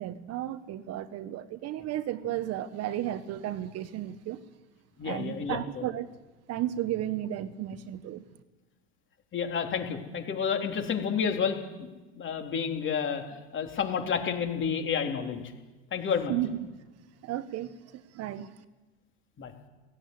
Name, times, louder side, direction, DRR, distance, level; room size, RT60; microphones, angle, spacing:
voice 1, 0.0-4.4 5.0-6.2 6.5-8.2 16.3-16.6 17.2-18.5, right 12 dB, 50° right, 13 dB, 1.3 m, -33 dB
voice 2, 5.0-5.9 9.3-11.9 12.2-15.4 15.9-16.3 19.4-19.5, left 6 dB, 35° left, 3 dB, 3.7 m, -30 dB
16.5 x 16.5 x 9.7 m, 1.2 s
hypercardioid pair, 90°, 33 cm